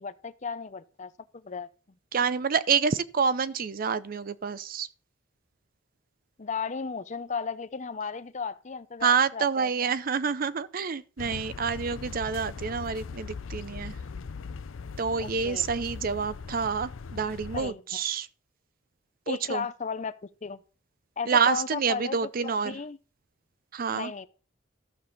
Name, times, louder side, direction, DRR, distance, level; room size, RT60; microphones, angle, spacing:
voice 1, 0.0-1.7 6.4-9.9 15.2-15.6 17.5-18.0 19.3-20.1 20.4-20.6 21.2-23.0 23.9-24.3, left 5 dB, 35° left, 0.6 m, -35 dB
voice 2, 2.1-4.9 9.0-14.0 15.0-18.3 19.3-19.6 21.3-22.8 23.7-24.1, right 6 dB, 45° right, 0.5 m, -28 dB
sound 1, 11.2-17.7, left 5 dB, 85° left, 0.6 m, -40 dB
13.0 x 6.1 x 5.2 m
head